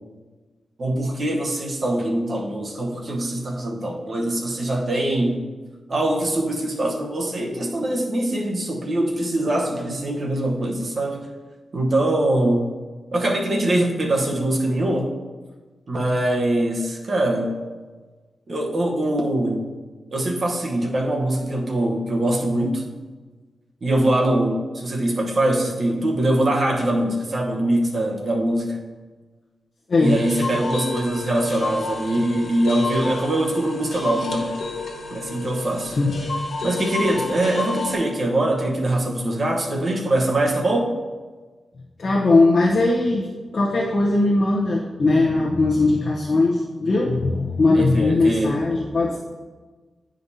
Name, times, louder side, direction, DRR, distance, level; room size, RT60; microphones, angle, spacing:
voice 1, 0.8-5.4 5.9-11.2 11.7-12.7 13.1-15.2 15.9-17.6 18.5-19.7 20.1-22.8 23.8-28.8 30.0-34.5 35.1-36.0 36.6-40.9 47.7-48.6, right 1 dB, 40° right, -1 dB, 1.0 m, -23 dB
voice 2, 29.9-30.2 36.0-36.1 42.0-43.3 43.5-49.2, left 2 dB, 50° left, -3 dB, 0.8 m, -19 dB
sound 1, 30.0-37.9, left 3 dB, 75° left, 1.4 m, -31 dB
9.5 x 5.1 x 2.8 m, 1.3 s
wide cardioid pair, 150°, 0 cm